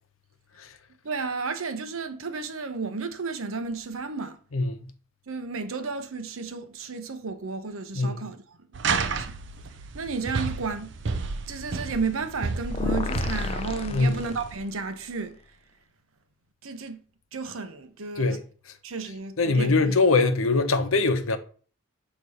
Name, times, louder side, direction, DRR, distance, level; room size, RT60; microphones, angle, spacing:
voice 1, 1.0-4.4 5.3-8.6 8.9-9.4 9.9-10.9 11.5-15.4 16.6-17.0 17.3-18.4 18.8-20.0, right 4 dB, 85° right, 0.8 m, -33 dB
voice 2, 4.5-4.9 7.9-8.1 13.9-14.2 18.2-18.4 19.4-21.4, left 3 dB, 80° left, 0.8 m, -22 dB
sound 1, 8.7-14.6, right 4 dB, 60° right, 0.5 m, -32 dB
sound 2, 12.7-14.8, left 3 dB, 30° left, 0.3 m, -31 dB
6.3 x 3.0 x 5.4 m
head